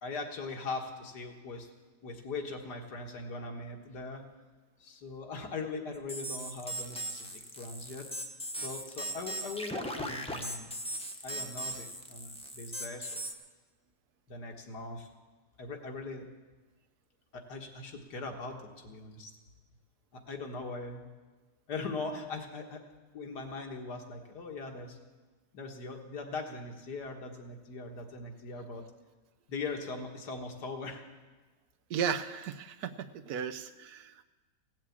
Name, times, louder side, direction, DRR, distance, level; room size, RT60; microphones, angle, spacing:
voice 1, 0.0-1.7 2.0-4.3 4.8-7.3 7.5-8.1 8.6-10.7 11.2-13.3 14.3-15.1 15.6-16.3 17.3-19.3 20.1-21.1 21.7-22.8 23.1-25.0 25.5-28.8 29.5-31.0, left 3 dB, 75° left, 3 dB, 2.0 m, -40 dB
sound 1, 6.1-13.3, right 1 dB, 5° left, 0.8 m, -38 dB
voice 2, 31.9-34.2, right 7 dB, 70° right, 10 dB, 1.1 m, -35 dB
16.5 x 7.5 x 8.5 m, 1.3 s
omnidirectional pair, 1.8 m